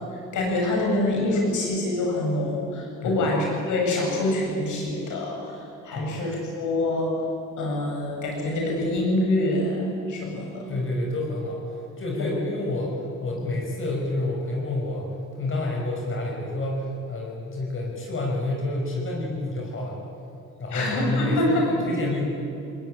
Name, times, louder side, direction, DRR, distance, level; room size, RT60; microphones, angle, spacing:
voice 1, 0.3-5.6 5.8-7.1 7.6-10.7 12.2-12.3 20.7-21.9, left 1 dB, 80° left, -1 dB, 7.5 m, -25 dB
voice 2, 10.7-11.6 12.0-12.9 13.2-15.1 15.3-20.0 20.6-22.2, left 2 dB, 45° left, -1 dB, 5.9 m, -29 dB
20.5 x 20.0 x 8.9 m, 2.7 s
cardioid pair, 90°, 30 cm